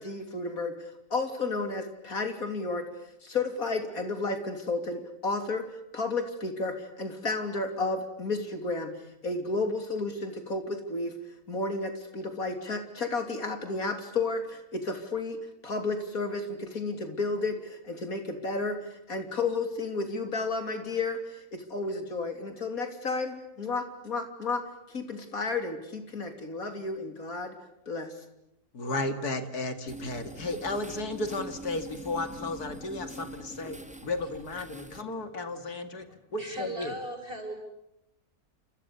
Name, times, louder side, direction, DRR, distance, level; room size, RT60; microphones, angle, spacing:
voice 1, 0.0-2.9 3.2-5.7 5.9-8.9 9.2-11.2 11.5-24.6 24.9-27.5 27.9-28.2, left 3 dB, 65° left, 6 dB, 3.8 m, -32 dB
voice 2, 28.7-33.8 34.0-37.0, left 2 dB, 80° left, 8 dB, 2.8 m, -34 dB
sound 1, 29.9-35.0, right 1 dB, 5° right, 1.8 m, -43 dB
voice 3, 33.5-34.3 34.9-35.3 36.0-37.5, right 1 dB, 35° right, 3 dB, 7.7 m, -41 dB
30.0 x 28.5 x 7.0 m, 0.85 s
omnidirectional pair, 1.6 m